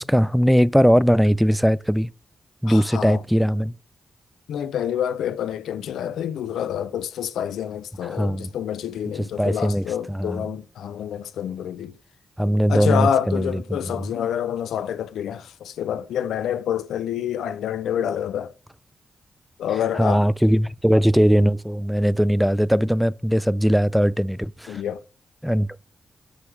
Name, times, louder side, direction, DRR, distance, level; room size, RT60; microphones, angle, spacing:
voice 1, 0.0-2.1 2.6-3.7 8.0-8.5 9.4-10.4 12.4-13.8 19.9-24.8 25.4-25.7, equal, ahead, 0.3 m, -20 dB
voice 2, 2.6-3.2 4.5-11.9 12.7-18.5 19.6-20.2 24.7-25.0, left 9 dB, 85° left, 0.4 m, -27 dB
6.2 x 6.1 x 3.2 m
supercardioid pair, 40°, 0 cm